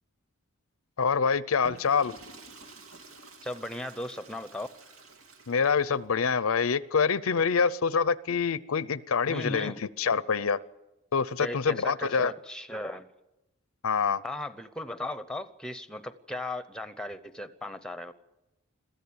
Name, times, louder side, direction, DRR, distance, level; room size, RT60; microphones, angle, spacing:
voice 1, 1.0-2.1 5.5-10.6 11.1-12.3 13.8-14.2, left 5 dB, 80° left, 18 dB, 0.6 m, -26 dB
Water / Toilet flush, 1.5-6.0, right 3 dB, 90° right, 2.6 m, -50 dB
voice 2, 3.4-4.7 8.8-8.9 9.3-9.8 11.4-13.1 14.2-18.1, left 1 dB, 5° left, 12 dB, 0.8 m, -37 dB
22.0 x 14.0 x 8.7 m, 0.98 s
head